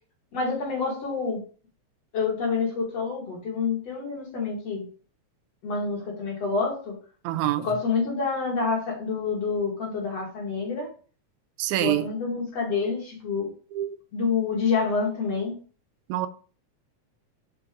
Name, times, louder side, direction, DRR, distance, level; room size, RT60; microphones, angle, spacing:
voice 1, 0.3-1.4 2.1-4.9 5.6-7.0 7.6-10.9 11.8-13.5 14.1-15.6, left 4 dB, 60° left, 3.0 m, -27 dB
voice 2, 7.2-7.7 11.6-12.1 13.7-14.0 16.1-16.3, right 13 dB, 90° right, 2.0 m, -26 dB
5.9 x 4.5 x 3.7 m
omnidirectional pair, 3.3 m